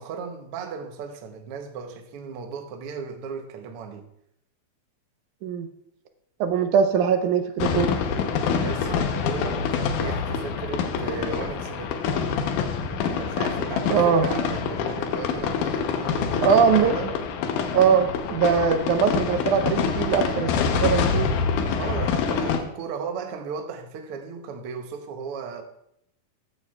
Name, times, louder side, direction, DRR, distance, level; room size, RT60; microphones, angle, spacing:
voice 1, 0.0-4.1 8.4-12.0 13.0-17.1 21.7-25.6, right 5 dB, 65° right, 1.5 m, -36 dB
voice 2, 6.4-7.9 13.9-14.2 16.4-17.0 17.7-21.3, right 7 dB, 80° right, 2.2 m, -21 dB
sound 1, 7.6-22.6, left 6 dB, 85° left, 2.4 m, -26 dB
14.5 x 9.2 x 2.3 m
omnidirectional pair, 3.5 m